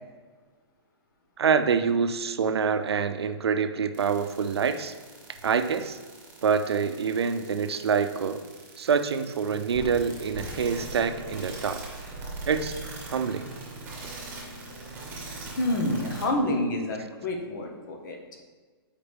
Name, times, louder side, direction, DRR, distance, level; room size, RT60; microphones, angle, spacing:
voice 1, 1.4-4.9 5.4-6.0 6.4-8.4 8.8-11.8 12.4-13.5, right 6 dB, 85° right, 10 dB, 0.6 m, -26 dB
sound 1, 3.9-16.3, right 3 dB, 15° right, 1.6 m, -40 dB
voice 2, 15.6-18.4, left 1 dB, 50° left, 2 dB, 1.2 m, -28 dB
8.6 x 4.9 x 3.4 m, 1.4 s
hypercardioid pair, 160°, 13 cm